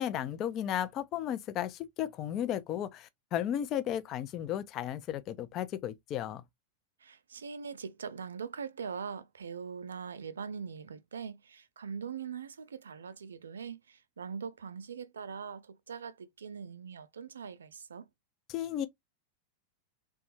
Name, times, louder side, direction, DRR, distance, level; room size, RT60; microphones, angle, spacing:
voice 1, 0.0-6.4 18.5-18.9, left 10 dB, 35° left, 0.4 m, -34 dB
voice 2, 7.0-18.1, right 6 dB, 70° right, 0.3 m, -42 dB
3.3 x 2.3 x 2.9 m
figure-of-eight pair, 90°, 0 cm